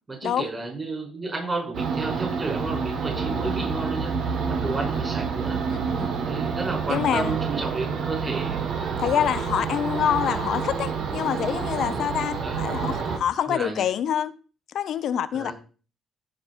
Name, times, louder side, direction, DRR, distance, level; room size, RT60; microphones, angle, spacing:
voice 1, 0.1-4.1 4.5-5.6 6.2-8.6 10.6-10.7 12.4-12.6 13.5-13.8 15.3-15.5, right 3 dB, 25° right, 5.0 m, -31 dB
sound 1, 1.7-13.2, right 5 dB, 70° right, 1.6 m, -28 dB
voice 2, 5.7-6.1 6.9-7.4 9.0-14.4 14.7-15.5, left 9 dB, 70° left, 0.7 m, -26 dB
14.5 x 5.3 x 4.2 m
cardioid pair, 90°, 0 cm